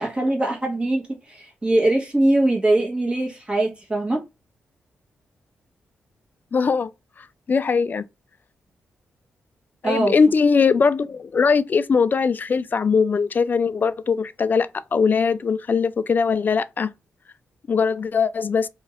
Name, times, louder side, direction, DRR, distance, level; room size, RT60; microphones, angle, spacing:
voice 1, 0.0-4.2 9.8-10.1, right 2 dB, 25° right, 1.2 m, -22 dB
voice 2, 6.5-6.9 7.5-8.0 9.8-16.9 17.7-18.7, left 5 dB, 45° left, 0.3 m, -20 dB
2.8 x 2.4 x 3.0 m
cardioid pair, 60°, 4 cm